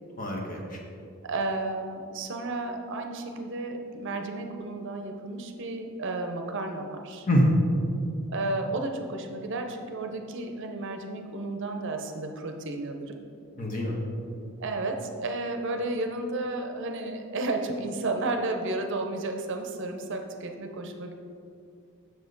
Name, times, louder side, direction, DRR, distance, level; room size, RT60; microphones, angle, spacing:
voice 1, 0.2-0.8 7.3-7.5 13.6-14.0, equal, 40° left, -1 dB, 1.2 m, -25 dB
voice 2, 1.2-7.3 8.3-13.2 14.6-21.1, right 2 dB, 55° right, 4 dB, 0.6 m, -32 dB
7.3 x 6.3 x 3.9 m, 2.5 s
head